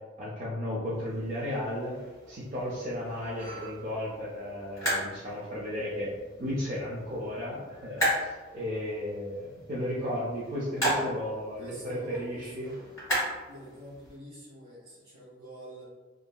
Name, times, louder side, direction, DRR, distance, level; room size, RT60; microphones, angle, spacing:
voice 1, 0.2-2.0 2.3-6.1 6.4-12.7, left 1 dB, 35° right, -7 dB, 0.4 m, -34 dB
sound 1, 0.9-14.2, equal, 15° left, 1.5 m, -36 dB
voice 2, 11.5-12.7 13.4-15.8, equal, 55° right, -9 dB, 1.4 m, -46 dB
2.8 x 2.5 x 2.2 m, 1.3 s
head